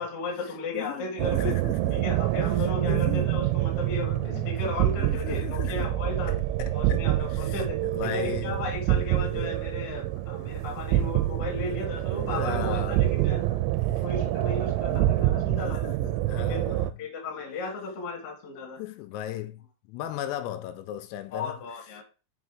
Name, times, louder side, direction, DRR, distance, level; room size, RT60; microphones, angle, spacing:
voice 1, 0.0-1.5 1.9-6.3 6.7-13.6 14.0-15.8 16.5-18.8 21.3-22.0, left 3 dB, 50° left, 1.9 m, -35 dB
voice 2, 0.7-2.1 2.6-3.5 4.2-5.9 6.3-7.0 7.3-8.6 9.2-9.6 11.6-11.8 12.2-13.0 13.9-14.0 14.9-17.0 18.8-21.6, left 12 dB, 85° left, 3.3 m, -37 dB
sound 1, 1.2-16.9, right 15 dB, 85° right, 2.9 m, -26 dB
6.3 x 5.8 x 4.7 m
omnidirectional pair, 6.0 m